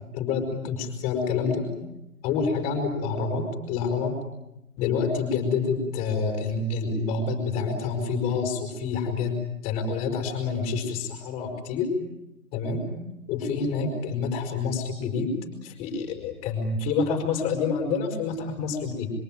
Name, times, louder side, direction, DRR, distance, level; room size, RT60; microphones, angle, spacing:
voice 1, 0.1-1.7 2.2-4.1 4.8-9.4 9.6-11.9 12.5-12.9 13.3-15.3 15.6-19.1, left 5 dB, 15° left, 3 dB, 5.1 m, -27 dB
26.5 x 24.0 x 9.2 m, 0.90 s
hypercardioid pair, 165°, 46 cm